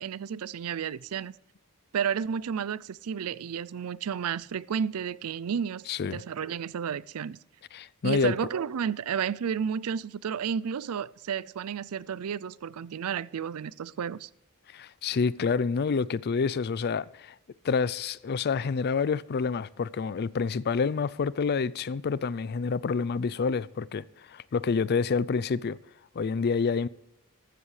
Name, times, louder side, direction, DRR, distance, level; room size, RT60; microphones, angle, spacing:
voice 1, 0.0-1.3 1.9-5.8 6.1-7.4 8.0-14.3, right 7 dB, 80° right, 0.4 m, -32 dB
voice 2, 5.9-6.2 7.7-8.3 14.7-17.4 17.6-25.8 26.1-26.9, left 5 dB, 50° left, 0.4 m, -28 dB
15.0 x 12.5 x 3.3 m
head